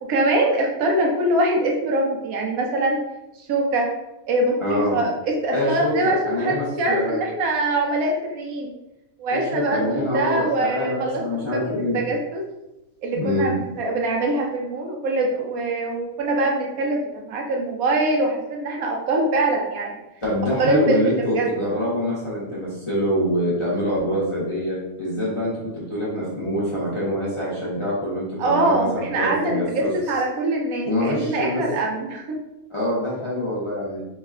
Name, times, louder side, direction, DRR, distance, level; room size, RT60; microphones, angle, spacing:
voice 1, 0.0-3.0 3.4-3.9 4.3-8.7 9.2-12.4 13.0-20.0 20.6-21.5 28.4-32.4, right 2 dB, 80° right, 0 dB, 1.2 m, -23 dB
voice 2, 4.6-5.0 5.5-7.2 9.3-12.0 13.1-13.5 20.2-29.9 30.8-31.6 32.7-34.0, equal, 30° left, -8 dB, 0.7 m, -25 dB
3.1 x 2.2 x 3.6 m, 0.94 s
omnidirectional pair, 1.5 m